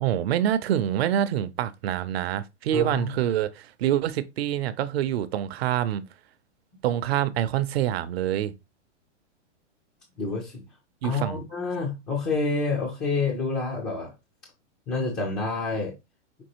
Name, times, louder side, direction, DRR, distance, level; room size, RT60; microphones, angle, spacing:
voice 1, 0.0-6.1 6.8-8.5 11.0-11.4, right 11 dB, 55° right, 0.6 m, -26 dB
voice 2, 2.7-3.1 10.2-10.6 11.0-14.1 14.9-15.9, left 3 dB, 10° left, 0.3 m, -28 dB
5.3 x 3.0 x 2.9 m
hypercardioid pair, 150°, 37 cm